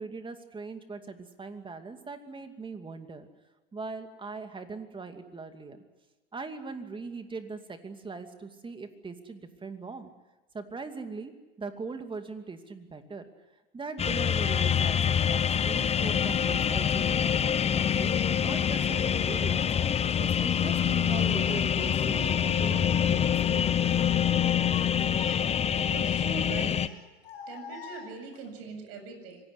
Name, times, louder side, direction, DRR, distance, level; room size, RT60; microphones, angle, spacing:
voice 1, 0.0-3.3 3.7-5.8 6.3-10.1 10.5-11.3 11.6-13.2 13.7-19.7 20.2-23.8, right 4 dB, 15° right, 7 dB, 2.5 m, -40 dB
sound 1, 14.0-26.9, left 8 dB, 20° left, 0.9 m, -26 dB
Child speech kid speaking, 17.3-17.5 18.4-19.1 20.1-20.7 21.1-22.3 22.6-22.9 23.3-23.9 24.4-25.8 26.8-28.5, left 6 dB, 85° left, 6.0 m, -48 dB
sound 2, 22.1-24.7, right 5 dB, 80° right, 2.1 m, -49 dB
voice 2, 25.9-26.8 27.5-29.4, right 4 dB, 55° right, 6 dB, 7.8 m, -41 dB
25.5 x 18.0 x 9.7 m, 1.1 s
hypercardioid pair, 100°, 30 cm